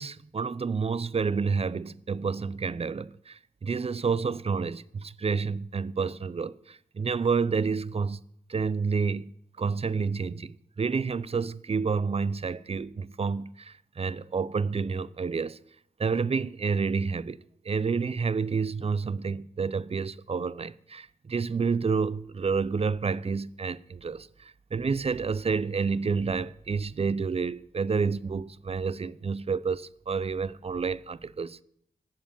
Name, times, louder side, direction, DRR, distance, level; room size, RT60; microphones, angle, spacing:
voice 1, 0.0-8.2 8.5-9.3 9.6-15.6 16.0-17.4 17.6-31.6, right 5 dB, 40° right, 0.5 m, -29 dB
11.5 x 7.4 x 8.8 m
cardioid pair, 60°, 16 cm